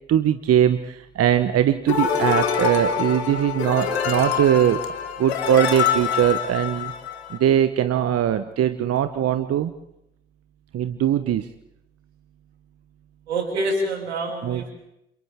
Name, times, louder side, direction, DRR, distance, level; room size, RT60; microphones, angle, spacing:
voice 1, 0.1-4.8 5.2-6.9 7.3-9.7 10.7-11.5 14.4-14.6, right 10 dB, 50° right, 11 dB, 1.1 m, -21 dB
sound 1, 1.9-7.4, left 7 dB, 85° left, 1.9 m, -25 dB
voice 2, 13.3-14.7, right 2 dB, 85° right, 3 dB, 3.2 m, -26 dB
30.0 x 27.5 x 3.7 m, 0.83 s
figure-of-eight pair, 45°, 32 cm